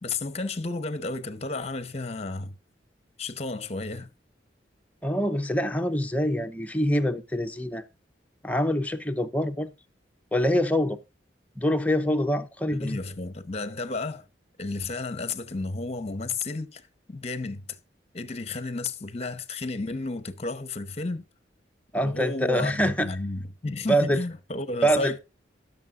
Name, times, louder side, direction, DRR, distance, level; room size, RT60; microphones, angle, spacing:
voice 1, 0.0-2.5 3.2-4.1 12.8-14.3 14.6-16.8 17.1-17.8 18.1-21.2 22.0-25.2, left 3 dB, 35° left, 0.9 m, -32 dB
voice 2, 5.0-7.9 8.4-9.7 10.3-11.0 11.6-13.0 21.9-23.1 23.9-24.2 24.8-25.1, equal, 10° left, 0.7 m, -25 dB
17.0 x 7.0 x 2.5 m
head